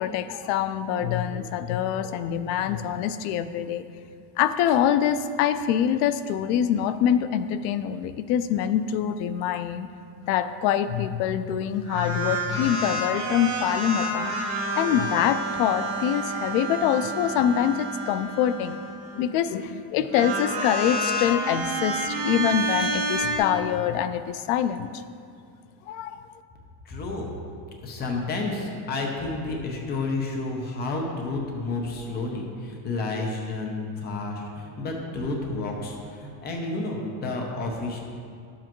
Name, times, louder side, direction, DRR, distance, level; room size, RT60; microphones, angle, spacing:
voice 1, 0.0-3.8 4.4-9.9 10.3-14.4 14.8-18.8 19.1-25.0 25.9-26.3, left 9 dB, 70° left, 12 dB, 0.6 m, -25 dB
sound 1, 11.8-19.2 20.0-23.4, right 2 dB, 25° right, 2.1 m, -29 dB
voice 2, 26.8-27.3 27.8-38.0, left 3 dB, 20° left, 1 dB, 0.7 m, -30 dB
11.0 x 7.5 x 3.0 m, 2.3 s
cardioid pair, 175°, 50 cm